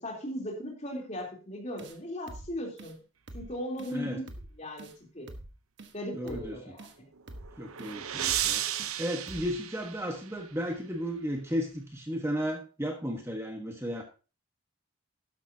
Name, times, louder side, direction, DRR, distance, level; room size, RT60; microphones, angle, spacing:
voice 1, 0.0-2.9 3.3-4.3 4.6-4.9 5.1-5.3 5.9-6.9, equal, 30° left, 0 dB, 3.4 m, -37 dB
sound 1, 1.8-2.0 2.3-2.5 2.8-2.9 3.3-3.5 3.8-4.0 4.3-4.5 4.8-5.0 5.3-5.5 5.8-5.9 6.3-6.5 6.8-7.0 7.3-7.5 7.8-7.9 8.3-8.5 8.8-9.0 9.3-9.5, right 1 dB, 55° right, 1.2 m, -45 dB
voice 2, 3.9-4.2 6.1-6.7 7.6-14.0, equal, 10° right, 2 dB, 1.4 m, -34 dB
sound 2, 7.1-10.5, right 11 dB, 85° right, 0.8 m, -34 dB
12.5 x 11.0 x 2.8 m, 0.33 s
head